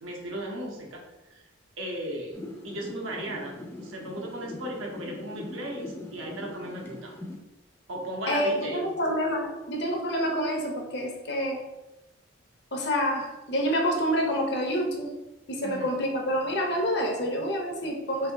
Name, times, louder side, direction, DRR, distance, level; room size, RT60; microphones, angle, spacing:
voice 1, 0.0-1.4 1.8-2.4 2.6-7.1 7.9-8.9 15.6-15.9, right 1 dB, 85° right, 0 dB, 0.9 m, -36 dB
sound 1, 2.3-7.3, left 2 dB, 10° left, 0.4 m, -41 dB
voice 2, 8.3-11.6 12.7-15.1 15.5-18.3, equal, 55° left, 1 dB, 0.7 m, -27 dB
3.4 x 2.6 x 3.5 m, 1.0 s
head